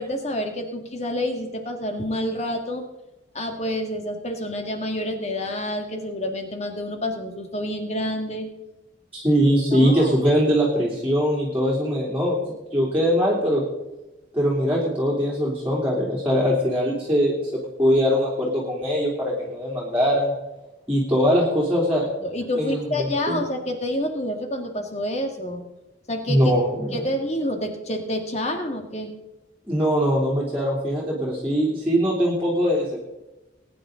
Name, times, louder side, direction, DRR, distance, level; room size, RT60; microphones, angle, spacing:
voice 1, 0.0-2.8 3.3-8.5 9.7-10.1 22.2-25.7 26.1-26.4 26.9-29.1, left 1 dB, 35° left, 4 dB, 1.8 m, -28 dB
voice 2, 9.1-12.4 12.7-13.6 14.3-17.5 17.8-20.3 20.9-22.0 22.5-22.9 23.3-23.4 26.3-27.0 29.7-32.9, equal, 10° right, -6 dB, 3.2 m, -21 dB
22.0 x 10.0 x 3.9 m, 1.0 s
head